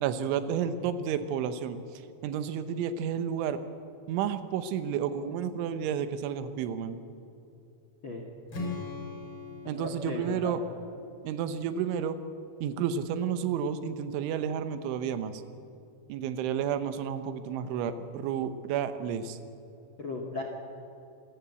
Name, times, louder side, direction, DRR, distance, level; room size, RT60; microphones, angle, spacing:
voice 1, 0.0-1.8 2.2-3.6 4.1-7.0 9.7-10.6 11.2-12.2 12.6-15.4 16.1-19.4, right 8 dB, 90° right, 10 dB, 3.5 m, -31 dB
Strum, 8.5-12.6, left 3 dB, 30° left, 3.7 m, -42 dB
voice 2, 9.6-10.5 20.0-20.4, left 2 dB, 55° left, 3 dB, 1.3 m, -36 dB
26.0 x 15.0 x 8.3 m, 2.8 s
omnidirectional pair, 5.3 m